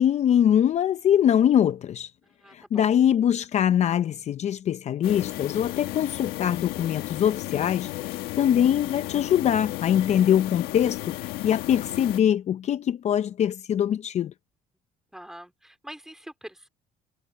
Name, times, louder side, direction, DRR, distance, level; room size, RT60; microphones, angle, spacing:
voice 1, 0.0-2.1 2.5-14.3, left 10 dB, 50° left, 0.6 m, -23 dB
voice 2, 2.2-2.9 15.1-16.7, equal, 5° right, 4.2 m, -44 dB
sound 1, 5.0-12.2, left 17 dB, 85° left, 1.7 m, -34 dB
cardioid pair, 95°, 15 cm